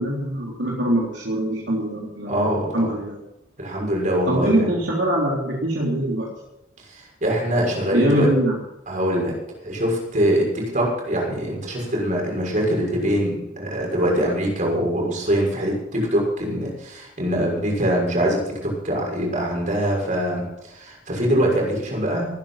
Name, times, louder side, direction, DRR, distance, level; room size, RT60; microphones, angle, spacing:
voice 1, 0.0-3.2 4.3-6.3 7.9-8.6, right 1 dB, 65° right, -3 dB, 3.6 m, -23 dB
voice 2, 2.3-2.9 3.6-4.7 6.9-8.3 8.9-9.3 9.6-22.3, equal, 40° right, -1 dB, 6.4 m, -23 dB
20.5 x 10.0 x 5.9 m, 0.86 s
head